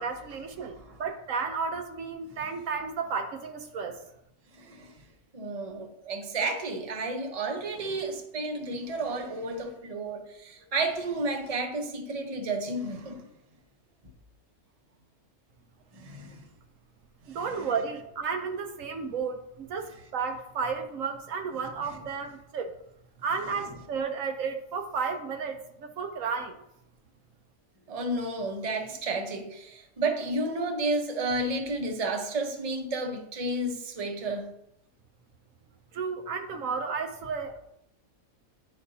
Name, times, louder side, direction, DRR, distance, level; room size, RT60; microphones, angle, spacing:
voice 1, 0.0-4.0 17.3-22.7 23.2-26.6 35.9-37.6, right 5 dB, 70° right, 5 dB, 1.1 m, -33 dB
voice 2, 4.5-5.0 5.3-13.3 15.9-16.4 17.2-17.7 27.9-34.5, right 2 dB, 30° right, 3 dB, 0.8 m, -32 dB
10.5 x 5.1 x 2.7 m, 0.79 s
omnidirectional pair, 1.5 m